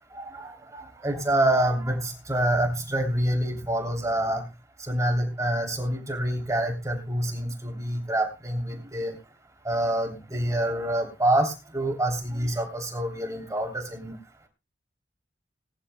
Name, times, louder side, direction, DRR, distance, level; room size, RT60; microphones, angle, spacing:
voice 1, 0.1-4.4 4.9-9.1 9.6-14.1, right 1 dB, 20° right, 2 dB, 3.0 m, -27 dB
20.0 x 14.0 x 2.2 m, 0.29 s
head